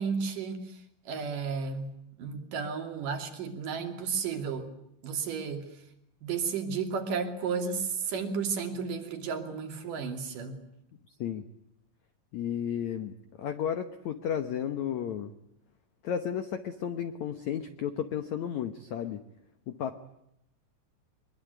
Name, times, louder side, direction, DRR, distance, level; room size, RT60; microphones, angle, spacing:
voice 1, 0.0-1.9 2.2-4.7 5.0-5.7 6.2-10.6, right 5 dB, 50° right, 5 dB, 4.0 m, -33 dB
voice 2, 12.3-13.1 13.4-15.3 16.0-19.2 19.7-20.0, left 9 dB, 75° left, 9 dB, 1.6 m, -33 dB
23.5 x 23.0 x 9.3 m, 0.79 s
omnidirectional pair, 5.0 m